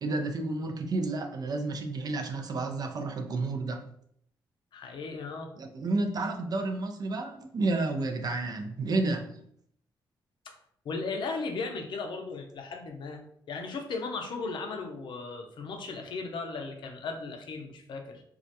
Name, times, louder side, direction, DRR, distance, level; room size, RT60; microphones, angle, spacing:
voice 1, 0.0-3.8 5.6-9.3, right 3 dB, 50° right, 5 dB, 0.4 m, -31 dB
voice 2, 4.7-5.5 10.5-10.6 10.8-13.2 13.5-18.2, left 4 dB, 65° left, 3 dB, 0.5 m, -36 dB
2.3 x 2.1 x 2.7 m, 0.68 s
cardioid pair, 75°, 9 cm